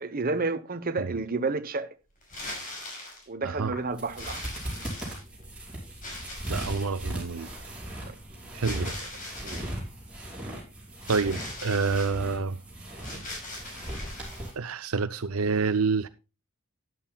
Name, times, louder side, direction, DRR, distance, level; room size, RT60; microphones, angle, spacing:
voice 1, 0.0-1.9 3.3-4.4 8.0-8.2 8.7-8.9 9.4-9.8, right 3 dB, 40° right, 1.0 m, -31 dB
sound 1, 2.2-3.3 4.2-5.4 6.0-7.0 8.6-9.8 11.0-12.2 13.0-14.5, left 1 dB, 40° left, 5.7 m, -40 dB
sound 2, 3.6-14.5, right 1 dB, 5° right, 5.4 m, -38 dB
voice 2, 6.5-7.5 8.5-8.9 11.1-12.6 14.6-16.1, right 4 dB, 75° right, 0.6 m, -28 dB
13.0 x 11.0 x 2.3 m
head